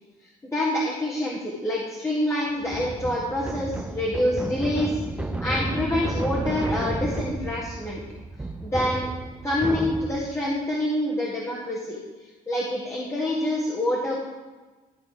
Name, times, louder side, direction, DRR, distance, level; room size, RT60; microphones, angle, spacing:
voice 1, 0.5-8.0 8.6-9.1 9.4-12.0 12.5-14.2, left 1 dB, 15° left, -6 dB, 1.6 m, -26 dB
sound 1, 2.6-10.4, right 2 dB, 5° right, 0.5 m, -32 dB
12.5 x 4.2 x 5.1 m, 1.2 s
cardioid pair, 110°, 17 cm